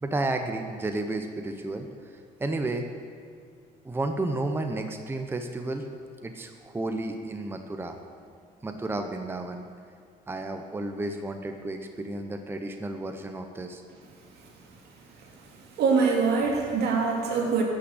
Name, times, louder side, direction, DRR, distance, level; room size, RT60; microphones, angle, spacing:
voice 1, 0.0-1.9 2.4-2.9 3.8-5.9 6.2-8.0 8.6-9.7 10.3-13.8, right 2 dB, 15° right, 5 dB, 0.7 m, -32 dB
voice 2, 15.2-17.6, right 5 dB, 75° right, 0 dB, 2.4 m, -25 dB
12.5 x 6.1 x 8.0 m, 2.1 s
cardioid pair, 110°, 17 cm